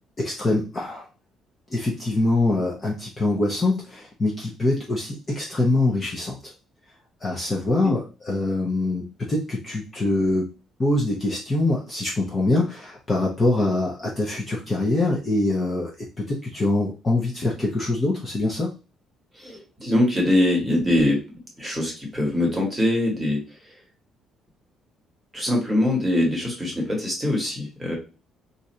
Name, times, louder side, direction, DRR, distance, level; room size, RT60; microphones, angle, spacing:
voice 1, 0.2-1.0 1.7-6.5 7.2-10.5 10.8-18.7, left 2 dB, 20° left, -3 dB, 0.6 m, -24 dB
voice 2, 19.4-23.4 25.3-28.0, left 1 dB, 5° right, -2 dB, 1.1 m, -23 dB
2.6 x 2.5 x 4.2 m, 0.31 s
cardioid pair, 175°, 0 cm